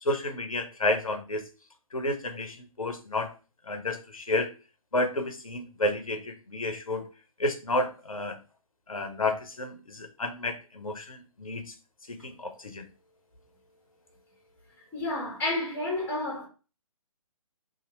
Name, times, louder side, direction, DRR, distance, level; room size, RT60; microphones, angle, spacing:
voice 1, 0.0-1.4 1.9-3.3 3.7-4.5 4.9-7.1 7.4-8.4 8.9-11.7 12.1-12.9, left 2 dB, 70° left, 0.9 m, -31 dB
voice 2, 14.9-16.5, left 2 dB, 10° left, 1.9 m, -30 dB
4.2 x 2.8 x 4.0 m
figure-of-eight pair, 135°, 18 cm